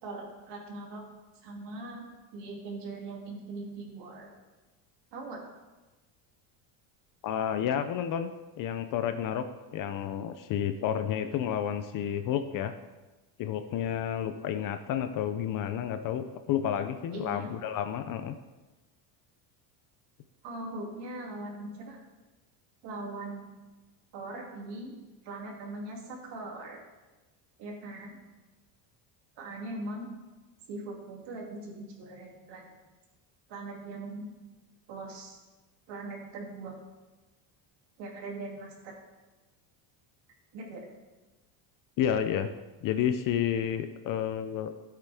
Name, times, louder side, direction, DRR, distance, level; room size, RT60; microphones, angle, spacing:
voice 1, 0.0-1.0 1.4-2.0 2.3-4.3 5.1-5.4 17.1-17.5 20.4-22.0 22.8-23.5 24.1-24.9 25.2-26.8 27.6-28.2 29.4-30.1 30.7-32.7 33.5-34.3 34.9-35.4 35.9-36.7 38.0-38.9 40.5-40.8, right 2 dB, 55° right, 0 dB, 2.7 m, -40 dB
voice 2, 7.2-9.5 9.7-12.7 13.4-18.4 42.0-42.5 42.8-44.7, left 9 dB, 45° left, 10 dB, 0.5 m, -30 dB
14.0 x 8.3 x 3.5 m, 1.2 s
cardioid pair, 155°, 50 cm